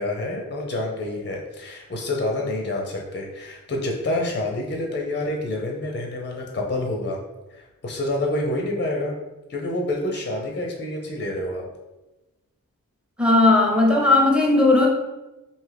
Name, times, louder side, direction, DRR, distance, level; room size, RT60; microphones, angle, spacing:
voice 1, 0.0-7.2 7.5-9.2 9.5-11.7, left 1 dB, 35° left, 0 dB, 0.6 m, -28 dB
voice 2, 13.2-14.9, left 2 dB, 5° right, -1 dB, 0.8 m, -16 dB
2.6 x 2.4 x 3.3 m, 1.1 s
cardioid pair, 45°, 34 cm